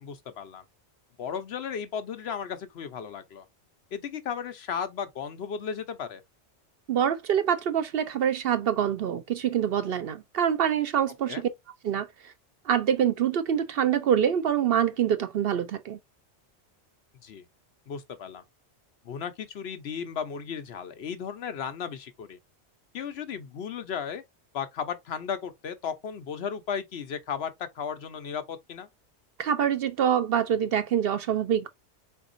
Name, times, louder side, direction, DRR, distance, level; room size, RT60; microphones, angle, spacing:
voice 1, 0.0-0.6 1.2-3.4 3.9-6.2 11.3-11.4 17.2-17.4 17.9-18.4 19.0-22.4 22.9-24.2 24.5-28.9, left 7 dB, 65° left, 0.9 m, -35 dB
voice 2, 6.9-11.5 11.8-12.3 12.7-16.0 29.4-31.7, right 9 dB, 60° right, 0.7 m, -25 dB
4.3 x 4.0 x 2.5 m
omnidirectional pair, 1.2 m